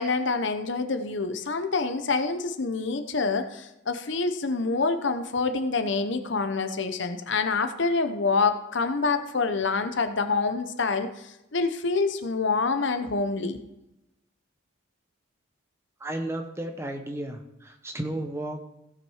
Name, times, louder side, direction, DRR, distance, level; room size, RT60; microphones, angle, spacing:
voice 1, 0.0-13.6, left 4 dB, 60° left, 8 dB, 0.8 m, -26 dB
voice 2, 16.0-18.6, right 1 dB, 15° right, 4 dB, 0.9 m, -33 dB
16.0 x 6.0 x 4.8 m, 0.88 s
head